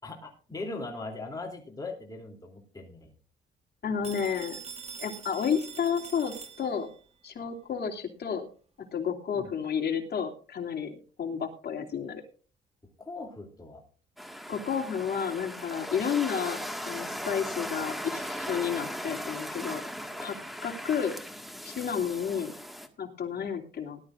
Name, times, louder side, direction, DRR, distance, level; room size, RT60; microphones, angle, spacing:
voice 1, 0.0-3.1 9.3-9.5 13.0-13.8, left 3 dB, 20° left, 0 dB, 3.1 m, -40 dB
voice 2, 3.8-4.6 5.0-6.9 7.2-8.5 8.9-12.2 14.5-16.6 16.9-19.8 20.2-20.4 20.6-21.1 21.6-22.5 23.0-24.0, left 7 dB, 55° left, 2 dB, 2.8 m, -31 dB
Telephone, 4.0-7.0, right 5 dB, 30° right, 2.3 m, -44 dB
sound 1, 14.2-22.9, equal, ahead, 1.9 m, -38 dB
19.0 x 12.0 x 2.6 m, 0.38 s
cardioid pair, 90°, 20 cm